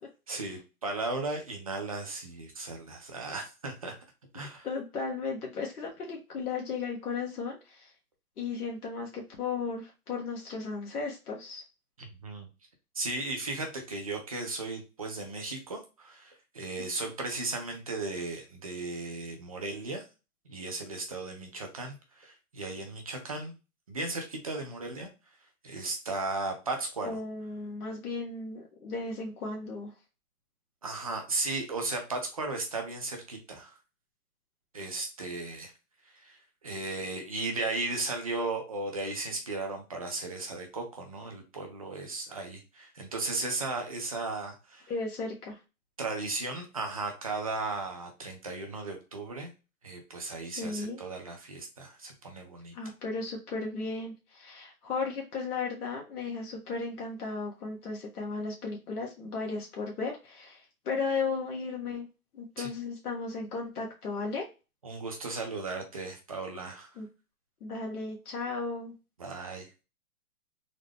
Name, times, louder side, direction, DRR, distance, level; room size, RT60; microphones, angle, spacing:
voice 1, 0.3-3.9 4.3-4.7 12.0-12.5 12.9-20.0 20.5-23.5 23.9-25.1 25.6-27.2 30.8-33.7 34.7-35.7 36.2-36.4 36.6-44.9 46.0-49.5 49.8-52.7 62.6-62.7 64.8-67.0 69.2-69.7, right 3 dB, 25° right, 3 dB, 0.5 m, -36 dB
voice 2, 4.3-7.9 8.4-11.6 16.8-17.1 27.0-29.9 44.9-45.6 50.6-51.0 52.7-62.1 62.3-64.5 67.0-67.1 67.6-68.9, left 4 dB, 75° left, -1 dB, 1.3 m, -35 dB
3.8 x 2.1 x 3.3 m, 0.29 s
hypercardioid pair, 160°, 45 cm